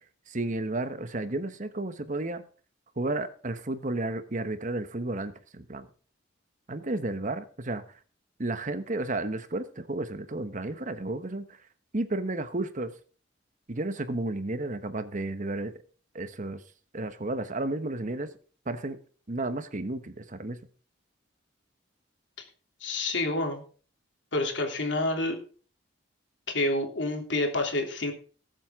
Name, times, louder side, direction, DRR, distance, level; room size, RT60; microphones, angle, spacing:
voice 1, 0.3-2.4 3.0-5.9 6.7-8.0 8.4-11.6 11.9-12.9 13.7-15.7 16.1-16.6 16.9-18.3 18.7-19.0 19.3-20.6, right 2 dB, 45° right, 11 dB, 1.1 m, -32 dB
voice 2, 22.8-23.6 24.3-25.4 26.5-28.1, left 2 dB, 70° left, 3 dB, 3.1 m, -28 dB
19.0 x 7.7 x 3.7 m, 0.39 s
head